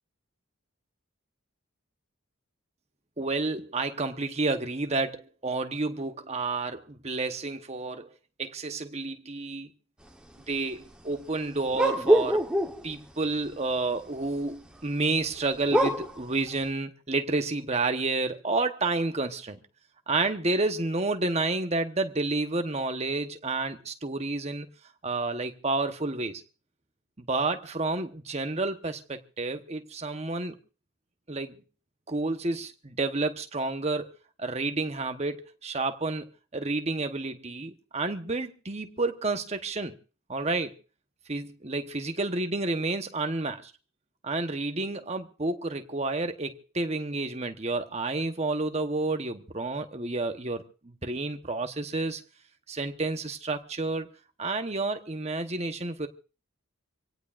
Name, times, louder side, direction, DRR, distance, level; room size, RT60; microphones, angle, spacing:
voice 1, 3.2-8.1 8.4-9.7 10.5-12.4 12.8-19.6 20.1-24.7 25.0-26.4 27.2-30.6 31.3-31.5 32.1-34.1 34.4-39.9 40.3-40.7 41.3-43.7 44.2-52.2 52.7-54.1 54.4-56.1, right 3 dB, 30° right, 1.0 m, -30 dB
sound 1, 11.7-12.9 15.7-16.2, right 1 dB, 5° right, 1.0 m, -23 dB
26.0 x 17.5 x 2.5 m
head